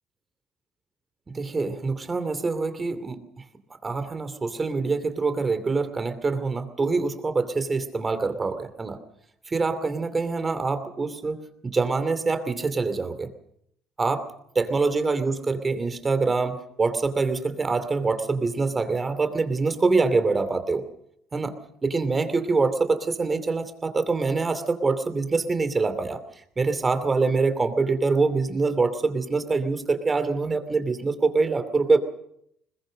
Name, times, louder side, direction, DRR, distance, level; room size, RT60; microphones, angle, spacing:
voice 1, 1.3-3.2 3.8-9.0 9.5-13.3 14.0-14.2 14.5-20.8 21.3-21.6 21.8-26.2 26.6-32.0, right 4 dB, 25° right, 10 dB, 2.7 m, -25 dB
21.5 x 21.0 x 6.5 m, 0.73 s
supercardioid pair, 95°, 0 cm